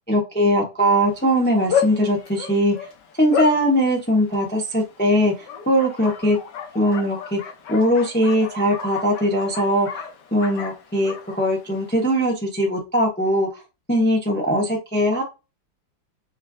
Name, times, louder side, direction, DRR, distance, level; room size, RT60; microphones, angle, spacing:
voice 1, 0.1-2.7 3.2-6.4 6.7-7.4 7.7-10.0 10.3-13.6 13.9-15.2, equal, 15° left, -1 dB, 0.4 m, -20 dB
Bark, 1.0-12.3, left 7 dB, 70° left, 1.4 m, -32 dB
5.3 x 2.4 x 2.3 m, 0.27 s
omnidirectional pair, 2.0 m